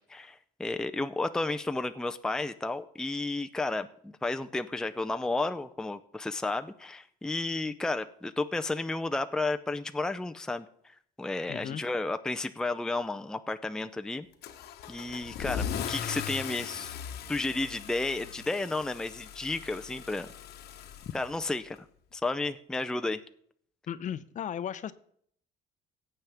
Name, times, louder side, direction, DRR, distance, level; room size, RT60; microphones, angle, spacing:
voice 1, 0.1-14.3 14.9-16.9 17.3-20.3 21.1-21.8 22.1-23.2, left 2 dB, 5° left, 9 dB, 0.5 m, -32 dB
voice 2, 11.5-11.8 21.0-21.1 23.9-24.9, left 9 dB, 45° left, 15 dB, 0.6 m, -35 dB
Car / Engine starting / Accelerating revving vroom, 14.4-21.8, left 8 dB, 75° left, 1.1 m, -39 dB
17.0 x 7.7 x 3.4 m, 0.64 s
cardioid pair, 110°, 17 cm